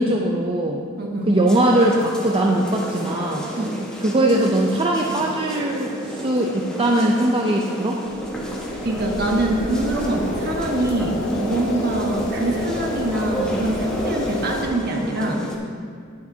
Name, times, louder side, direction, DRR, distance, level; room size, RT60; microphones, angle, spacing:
voice 1, 0.0-0.8 1.3-3.6 4.0-8.0, right 1 dB, 25° right, -1 dB, 0.6 m, -20 dB
voice 2, 1.0-1.3 3.6-3.8 8.8-15.4, right 1 dB, 50° right, 1 dB, 1.3 m, -24 dB
sound 1, 1.5-15.5, right 1 dB, 5° left, 1.4 m, -32 dB
sound 2, 8.0-14.6, left 1 dB, 65° left, 1.5 m, -30 dB
19.5 x 6.7 x 2.8 m, 2.2 s
head